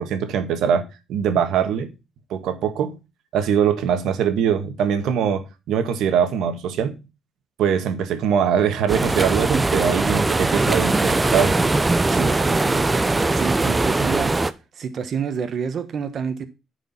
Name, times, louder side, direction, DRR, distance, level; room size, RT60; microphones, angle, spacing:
voice 1, 0.0-1.9 2.3-3.0 3.3-7.0 7.6-11.6, right 8 dB, 85° right, 1.6 m, -22 dB
sound 1, 8.9-14.5, right 2 dB, 20° right, 0.7 m, -20 dB
voice 2, 12.1-12.9 13.3-14.4 14.7-16.4, right 6 dB, 55° right, 1.3 m, -28 dB
9.5 x 5.0 x 5.8 m
cardioid pair, 90°, 0 cm